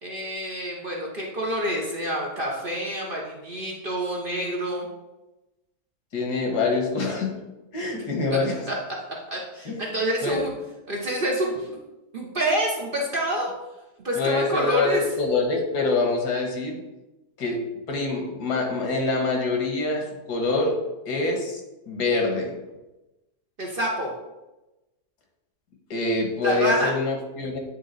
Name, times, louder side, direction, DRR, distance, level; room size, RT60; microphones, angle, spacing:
voice 1, 0.0-4.9 7.9-8.0 8.3-8.4 8.7-8.8 9.3-10.5 10.9-11.8 12.1-13.5 14.0-15.0 23.6-24.1 26.4-26.9, right 1 dB, 40° right, -2 dB, 0.9 m, -27 dB
voice 2, 6.1-7.3 7.7-8.6 9.7-9.9 10.2-10.4 14.2-16.8 17.4-17.6 17.9-20.8 21.1-21.6 21.9-22.5 25.9-27.6, left 3 dB, 75° left, 1 dB, 1.8 m, -25 dB
8.8 x 3.7 x 4.0 m, 1.0 s
omnidirectional pair, 1.8 m